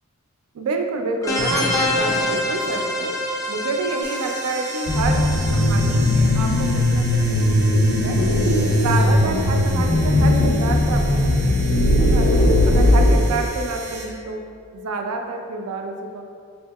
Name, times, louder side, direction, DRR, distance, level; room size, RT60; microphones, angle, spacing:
voice 1, 0.5-3.2 3.5-8.2 8.7-12.3 12.7-14.4 14.7-16.2, right 3 dB, 80° right, 4 dB, 0.4 m, -28 dB
sound 1, 1.2-8.6, left 1 dB, 15° left, 0.3 m, -27 dB
sound 2, 4.0-14.0, right 3 dB, 30° right, 0.6 m, -37 dB
sound 3, 4.9-13.2, left 1 dB, 70° left, 0.5 m, -18 dB
4.7 x 2.6 x 2.3 m, 2.3 s
head